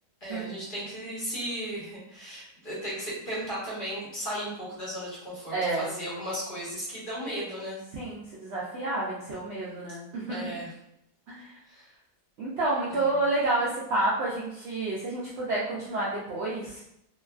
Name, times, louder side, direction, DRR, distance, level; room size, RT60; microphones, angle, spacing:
voice 1, 0.2-7.8 10.3-10.7 11.7-11.9 12.9-13.1, equal, 40° left, -8 dB, 0.9 m, -36 dB
voice 2, 5.5-5.9 7.9-10.5 11.3-11.5 12.4-16.8, right 2 dB, 90° right, -6 dB, 0.5 m, -29 dB
2.8 x 2.3 x 2.3 m, 0.78 s
omnidirectional pair, 1.7 m